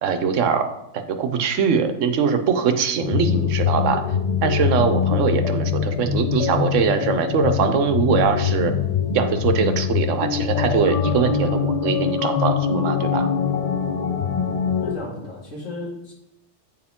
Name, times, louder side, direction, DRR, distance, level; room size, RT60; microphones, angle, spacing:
voice 1, 0.0-0.7 1.1-4.0 4.4-8.7 9.1-13.3, right 6 dB, 80° right, 9 dB, 1.0 m, -22 dB
sound 1, 3.0-15.0, left 7 dB, 50° left, 0.5 m, -23 dB
voice 2, 14.8-16.1, left 1 dB, 80° left, -5 dB, 2.6 m, -34 dB
8.5 x 4.7 x 3.6 m, 0.83 s
omnidirectional pair, 1.3 m